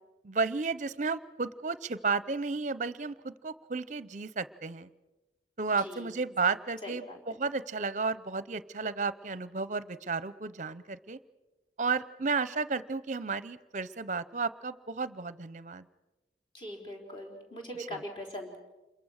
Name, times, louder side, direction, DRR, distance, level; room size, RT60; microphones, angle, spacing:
voice 1, 0.2-4.9 5.6-11.2 11.8-15.8 17.9-18.0, right 4 dB, 45° right, 16 dB, 0.7 m, -33 dB
voice 2, 5.8-6.1 6.8-7.2 16.5-18.6, equal, 25° left, 1 dB, 4.0 m, -41 dB
27.5 x 22.5 x 6.5 m, 1.1 s
head